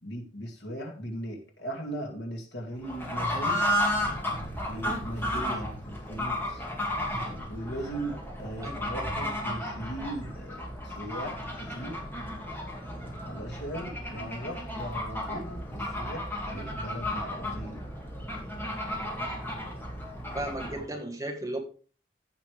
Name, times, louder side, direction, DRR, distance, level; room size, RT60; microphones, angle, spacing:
voice 1, 0.0-3.8 4.7-6.6 7.5-10.6 10.8-12.0 13.3-17.8, right 1 dB, 80° left, 2 dB, 2.2 m, -38 dB
Fowl / Bird, 2.8-20.9, left 1 dB, 10° left, 2.3 m, -33 dB
voice 2, 20.3-21.6, right 1 dB, 20° right, 3 dB, 1.4 m, -34 dB
15.0 x 5.7 x 3.4 m, 0.39 s
head